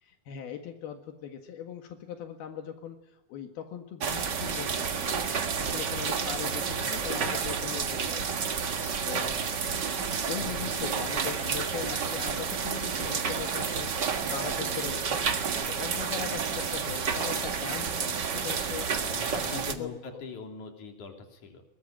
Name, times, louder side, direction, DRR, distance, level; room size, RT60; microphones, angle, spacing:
voice 1, 0.0-3.0 3.3-5.2 5.7-8.2 8.7-9.3 10.3-15.2 15.7-19.1 19.7-19.9, left 8 dB, 80° left, 5 dB, 3.7 m, -40 dB
sound 1, 4.0-19.7, right 6 dB, 45° right, 1.4 m, -30 dB
voice 2, 19.1-21.6, left 4 dB, 55° left, 4 dB, 4.5 m, -41 dB
22.5 x 22.0 x 9.1 m, 0.89 s
omnidirectional pair, 4.3 m